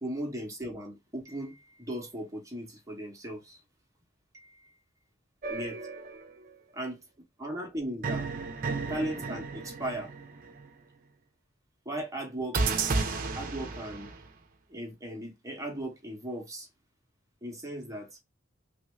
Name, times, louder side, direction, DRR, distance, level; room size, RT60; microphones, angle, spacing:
voice 1, 0.0-3.6 4.3-4.8 5.5-5.8 6.7-7.0 7.4-8.3 8.9-10.1 11.8-12.6 13.4-14.1 14.7-16.7 17.4-18.1, right 1 dB, 15° right, 1.0 m, -37 dB
sound 1, 5.4-6.5 8.0-10.7 12.5-14.3, right 4 dB, 45° right, 0.6 m, -33 dB
3.1 x 2.6 x 3.2 m
head